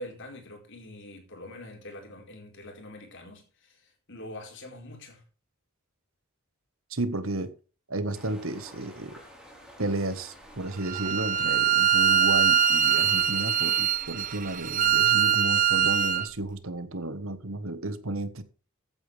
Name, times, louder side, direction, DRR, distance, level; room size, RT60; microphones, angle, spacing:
voice 1, 0.0-5.2, left 1 dB, 60° left, 4.5 m, -44 dB
voice 2, 6.9-7.5 7.9-9.2 9.8-18.4, right 2 dB, 65° right, 1.5 m, -32 dB
sound 1, 8.1-13.1, equal, 5° right, 4.1 m, -50 dB
Bowed string instrument, 10.9-16.3, right 9 dB, 40° right, 1.0 m, -23 dB
15.5 x 9.0 x 3.5 m
head